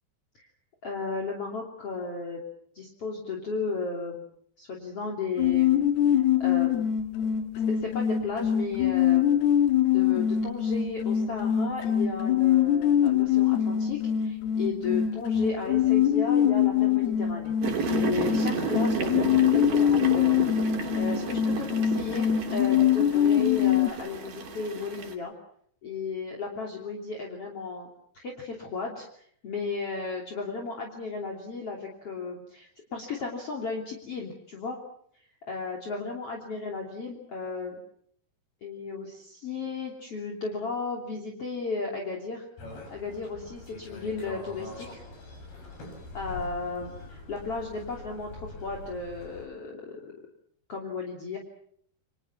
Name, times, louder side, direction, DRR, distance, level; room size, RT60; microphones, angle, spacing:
voice 1, 0.8-2.4 2.7-4.2 4.6-5.8 6.1-6.8 7.7-9.5 9.9-17.5 18.0-25.3 25.8-27.9 28.1-34.8 35.5-37.8 38.6-42.5 42.9-45.0 46.1-50.0 50.7-51.4, left 4 dB, 40° left, 0 dB, 3.8 m, -34 dB
sound 1, 5.4-23.9, left 10 dB, 85° left, 3.6 m, -24 dB
sound 2, 17.6-25.1, right 5 dB, 60° right, 4.5 m, -32 dB
sound 3, 42.6-49.5, left 2 dB, 70° left, 9.0 m, -43 dB
29.5 x 25.5 x 6.1 m, 0.63 s
omnidirectional pair, 4.4 m